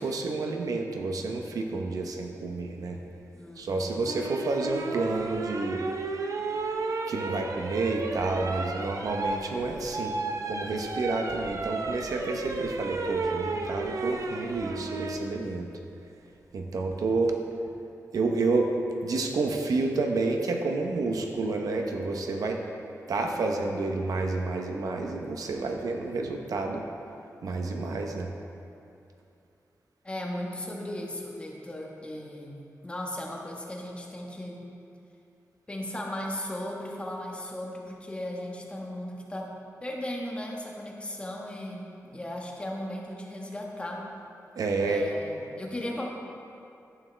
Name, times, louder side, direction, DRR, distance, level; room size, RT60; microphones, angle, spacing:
voice 1, 0.0-3.0 3.6-5.8 7.1-10.1 10.4-15.7 16.5-17.3 18.1-18.7 19.0-22.6 23.1-26.9 27.4-28.3 44.6-45.0, right 3 dB, 85° right, 2 dB, 0.9 m, -29 dB
voice 2, 3.3-4.1 30.0-34.6 35.7-44.1 44.9-46.1, left 1 dB, 20° left, -1 dB, 1.2 m, -37 dB
sound 1, 4.1-15.3 16.9-17.3, right 3 dB, 60° right, 0.6 m, -33 dB
11.0 x 8.6 x 3.4 m, 2.6 s
wide cardioid pair, 125°, 6 cm